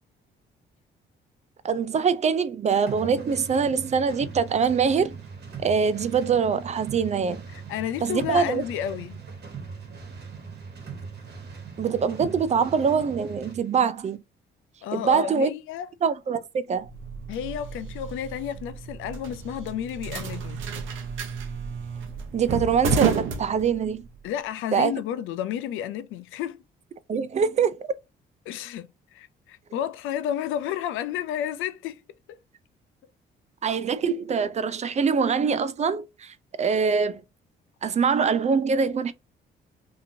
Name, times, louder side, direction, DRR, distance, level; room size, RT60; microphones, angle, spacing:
voice 1, 1.6-5.2 5.6-7.4 8.0-8.6 11.8-14.2 14.9-15.5 16.0-16.9 22.3-24.1 24.7-24.9 27.1-27.9 33.6-37.2 37.8-39.1, right 6 dB, 35° right, 0.4 m, -24 dB
sound 1, 2.9-13.6, right 5 dB, 55° right, 1.3 m, -40 dB
voice 2, 7.5-9.2 14.8-15.9 17.3-20.7 24.2-26.6 28.5-32.0 32.3-32.4, left 10 dB, 85° left, 0.4 m, -31 dB
sound 2, 16.8-24.2, right 5 dB, 75° right, 0.7 m, -31 dB
2.9 x 2.6 x 2.7 m
cardioid pair, 90°, 20 cm